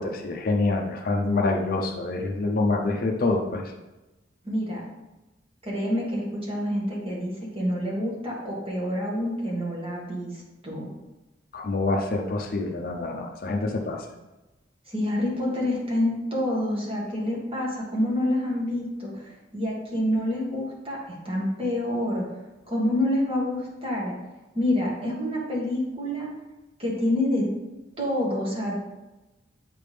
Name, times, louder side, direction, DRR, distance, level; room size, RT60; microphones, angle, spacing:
voice 1, 0.0-3.7 11.5-14.1, left 2 dB, 50° left, 2 dB, 0.6 m, -26 dB
voice 2, 4.4-4.8 5.6-10.9 14.9-22.3 22.7-24.1 24.5-26.3 26.8-27.5 28.0-28.8, left 1 dB, 30° right, -4 dB, 1.7 m, -27 dB
8.3 x 3.5 x 3.3 m, 1.1 s
head